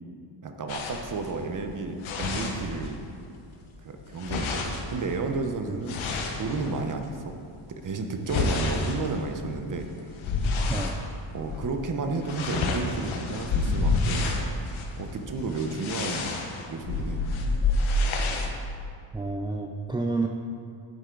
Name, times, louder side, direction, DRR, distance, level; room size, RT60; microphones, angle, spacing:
voice 1, 0.4-3.0 3.8-6.0 6.3-7.4 7.7-10.1 11.3-14.4 15.0-16.3 16.7-17.2, right 3 dB, 40° right, 5 dB, 1.0 m, -32 dB
sound 1, 0.7-3.2 3.5-7.1 7.7-11.0 11.4-11.7 12.0-18.5, left 3 dB, 85° left, 1.2 m, -29 dB
voice 2, 10.7-11.0 18.4-18.7 19.1-20.3, right 3 dB, 10° right, 2 dB, 0.4 m, -30 dB
11.5 x 8.0 x 3.9 m, 2.3 s
cardioid pair, 125°, 46 cm